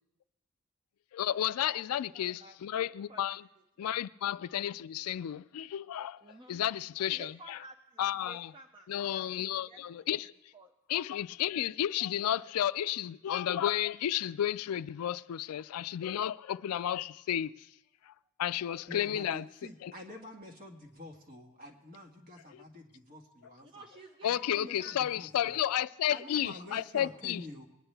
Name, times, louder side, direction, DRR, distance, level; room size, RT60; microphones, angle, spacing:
voice 1, 1.1-3.4 3.8-6.2 6.5-7.6 8.0-8.5 8.9-10.3 10.9-17.7 18.1-18.2 18.4-19.4 19.8-19.9 24.2-27.4, left 11 dB, 85° left, 0.3 m, -32 dB
voice 2, 1.7-2.6 3.1-3.2 6.2-6.6 7.0-9.8 10.5-10.7 23.6-25.8, right 2 dB, 25° right, 0.6 m, -53 dB
voice 3, 18.9-23.9 24.2-25.6 26.1-27.7, left 1 dB, 40° right, 1.8 m, -47 dB
21.0 x 9.8 x 3.4 m
head